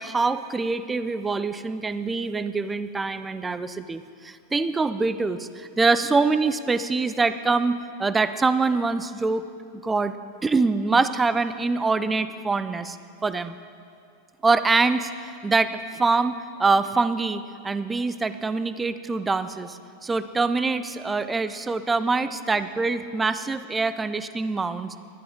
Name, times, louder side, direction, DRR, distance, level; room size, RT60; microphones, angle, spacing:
voice 1, 0.0-9.4 9.8-10.2 10.4-13.0 13.2-13.6 14.4-24.9, right 3 dB, 15° right, 13 dB, 0.5 m, -24 dB
19.5 x 13.0 x 3.7 m, 2.4 s
figure-of-eight pair, 90°, 0 cm